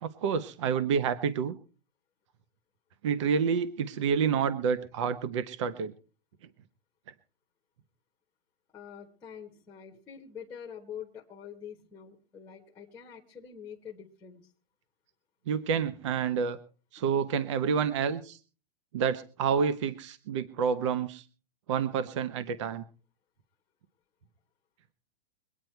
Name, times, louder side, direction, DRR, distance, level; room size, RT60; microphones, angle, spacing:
voice 1, 0.0-1.6 3.0-5.9 15.5-16.6 16.9-18.4 18.9-21.2 21.7-22.8, right 6 dB, 30° right, 14 dB, 0.7 m, -28 dB
voice 2, 8.7-14.5, left 8 dB, 5° left, 0 dB, 1.2 m, -45 dB
23.0 x 9.3 x 4.5 m, 0.38 s
hypercardioid pair, 180°, 30 cm